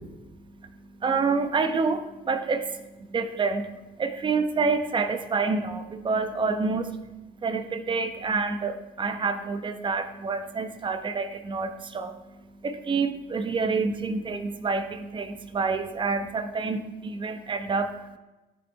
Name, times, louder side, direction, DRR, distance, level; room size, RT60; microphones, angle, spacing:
voice 1, 0.2-18.2, right 4 dB, 30° right, 7 dB, 0.9 m, -28 dB
14.0 x 5.3 x 3.6 m, 1.1 s
cardioid pair, 105°, 17 cm